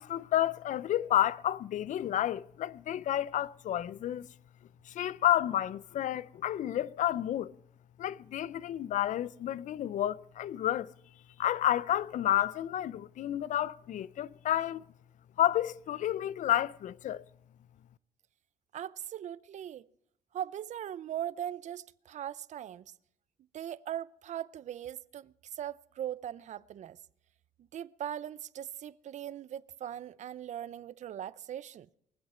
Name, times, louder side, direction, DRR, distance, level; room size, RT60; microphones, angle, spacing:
voice 1, 0.0-4.3 4.9-7.5 8.0-10.9 11.4-14.9 15.4-17.3, left 12 dB, 60° left, 0.5 m, -30 dB
voice 2, 18.7-19.8 20.3-22.8 23.5-27.0 27.6-31.9, right 10 dB, 55° right, 0.6 m, -40 dB
22.0 x 8.0 x 5.6 m
cardioid pair, 105°, 15 cm